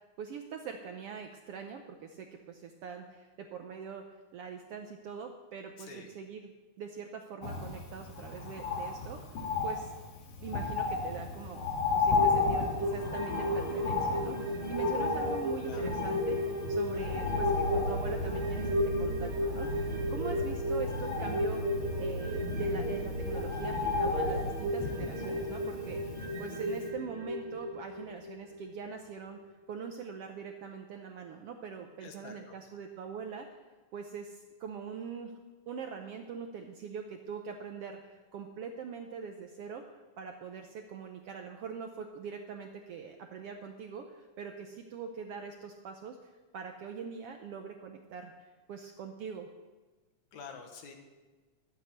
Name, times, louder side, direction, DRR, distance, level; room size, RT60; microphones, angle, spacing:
voice 1, 0.2-4.1 4.3-6.5 6.8-9.3 9.6-9.9 10.4-11.7 11.9-29.4 29.7-33.5 33.9-35.3 35.7-48.3 48.7-49.5, right 6 dB, 70° right, 4 dB, 1.4 m, -43 dB
voice 2, 5.8-6.1 15.6-15.9 32.0-32.6 50.3-50.9, left 5 dB, 70° left, 4 dB, 2.6 m, -47 dB
Bird, 7.4-26.5 26.9-27.0, left 4 dB, 55° left, 2.6 m, -34 dB
sound 1, 12.1-28.9 29.3-29.4, equal, 35° right, 1.1 m, -34 dB
sound 2, 17.0-24.5, left 1 dB, 30° left, 2.6 m, -38 dB
12.0 x 8.1 x 8.1 m, 1.3 s
omnidirectional pair, 3.5 m